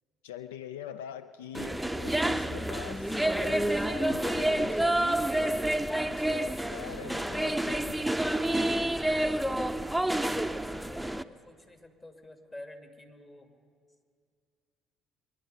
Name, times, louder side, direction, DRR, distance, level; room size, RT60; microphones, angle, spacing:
voice 1, 0.2-5.7 6.1-8.4, left 10 dB, 85° left, 12 dB, 0.3 m, -44 dB
sound 1, 1.5-11.2, right 1 dB, 5° right, 0.6 m, -29 dB
voice 2, 10.5-13.5, left 1 dB, 30° left, 5 dB, 2.1 m, -49 dB
23.0 x 10.5 x 5.3 m, 2.2 s
hypercardioid pair, 55°, 0 cm